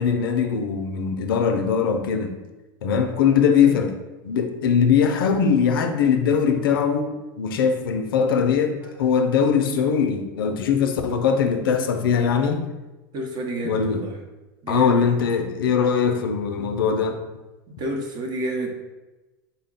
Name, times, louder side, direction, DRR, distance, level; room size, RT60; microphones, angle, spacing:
voice 1, 0.0-2.3 2.8-3.9 4.2-12.6 13.6-14.0 14.7-17.2, left 6 dB, 85° left, 0.4 m, -21 dB
voice 2, 13.1-14.2 14.6-15.1 17.8-18.8, right 1 dB, 40° right, 0.8 m, -30 dB
3.7 x 2.1 x 3.9 m
hypercardioid pair, 105°, 11 cm